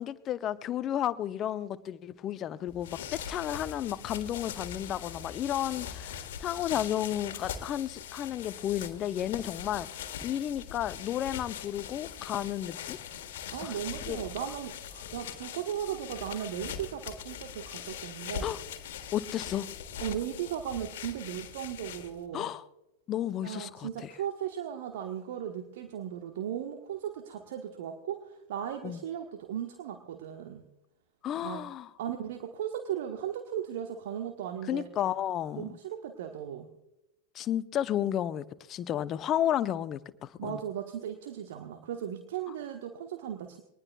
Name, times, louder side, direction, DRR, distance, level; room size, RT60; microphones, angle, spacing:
voice 1, 0.0-13.0 13.6-13.7 14.1-14.2 18.4-18.6 19.1-19.7 22.3-22.6 23.1-24.1 28.8-29.0 31.2-31.9 34.7-35.8 37.3-40.6, left 11 dB, 30° left, 0.7 m, -32 dB
sound 1, 2.7-22.3, left 8 dB, 55° left, 1.6 m, -41 dB
voice 2, 13.5-18.6 20.0-22.5 23.4-30.7 31.4-31.6 32.0-34.9 35.6-36.7 40.4-43.6, right 9 dB, 55° right, 1.3 m, -37 dB
22.5 x 19.5 x 2.4 m
figure-of-eight pair, 90°, 0 cm